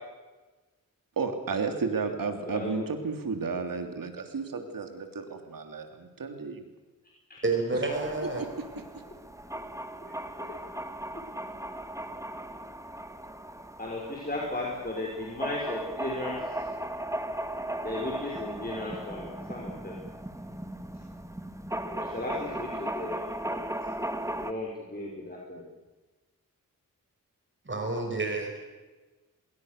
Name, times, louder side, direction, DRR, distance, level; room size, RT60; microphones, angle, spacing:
voice 1, 1.2-6.7 8.4-8.5, right 5 dB, 80° right, 6 dB, 3.3 m, -32 dB
voice 2, 2.5-2.9 7.3-7.4 9.6-9.7 10.0-10.8 13.8-16.7 17.8-19.9 21.9-23.2 23.5-23.6 24.3-25.6, left 2 dB, 25° left, -2 dB, 5.7 m, -36 dB
voice 3, 7.4-8.4 27.6-28.5, right 3 dB, 35° right, 3 dB, 5.4 m, -29 dB
sound 1, 7.9-24.5, right 1 dB, 10° right, 1.8 m, -37 dB
26.5 x 21.5 x 6.8 m, 1.2 s
wide cardioid pair, 75°, 33 cm